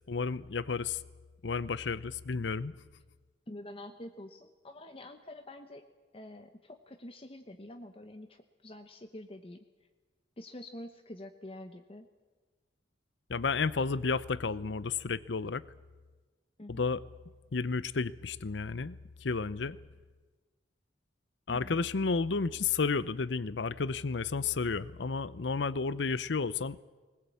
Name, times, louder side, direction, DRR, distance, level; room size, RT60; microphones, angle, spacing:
voice 1, 0.1-1.0 1.4-2.7 13.3-15.6 16.7-17.0 17.5-19.8 21.5-26.8, left 4 dB, 70° left, 18 dB, 0.7 m, -32 dB
voice 2, 3.5-5.8 6.1-9.6 10.4-12.1 16.6-16.9 21.5-21.8, left 1 dB, 30° left, 7 dB, 0.9 m, -47 dB
20.0 x 20.0 x 8.5 m, 1.3 s
head